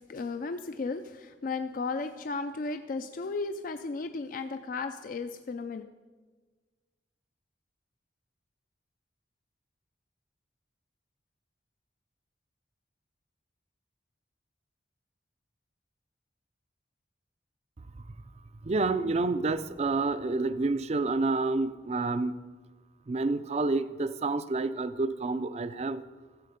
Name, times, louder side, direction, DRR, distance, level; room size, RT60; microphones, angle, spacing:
voice 1, 0.0-5.8, left 3 dB, 50° left, 9 dB, 0.4 m, -35 dB
voice 2, 18.6-22.4 23.1-26.0, right 3 dB, 35° right, 13 dB, 0.4 m, -29 dB
14.5 x 7.6 x 5.2 m, 1.4 s
head